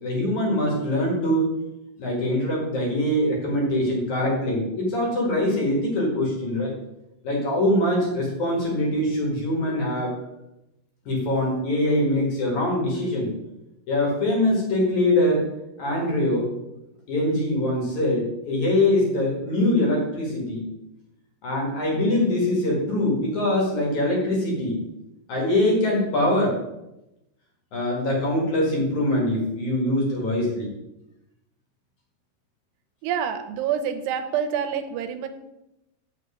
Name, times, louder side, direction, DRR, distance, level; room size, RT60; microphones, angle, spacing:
voice 1, 0.0-1.5 2.0-6.7 7.2-10.1 11.1-13.3 13.9-15.4 15.8-16.5 17.1-20.6 21.4-24.8 25.3-26.6 27.7-30.7, left 1 dB, 55° left, -2 dB, 3.0 m, -23 dB
voice 2, 33.0-35.3, right 8 dB, 85° right, 8 dB, 2.8 m, -27 dB
8.1 x 6.5 x 5.1 m, 0.91 s
omnidirectional pair, 4.7 m